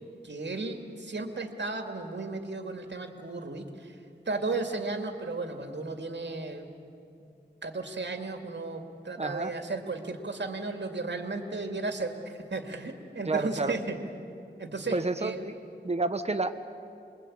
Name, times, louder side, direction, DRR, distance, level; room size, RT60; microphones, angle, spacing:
voice 1, 0.2-3.9 4.3-6.7 7.2-7.3 7.6-14.0 14.6-15.4, right 3 dB, 70° right, 5 dB, 2.5 m, -34 dB
voice 2, 9.2-9.5 13.3-13.7 14.9-15.5 15.8-16.6, right 3 dB, 35° right, 9 dB, 1.2 m, -29 dB
27.0 x 22.0 x 8.8 m, 2.6 s
wide cardioid pair, 65°, 19 cm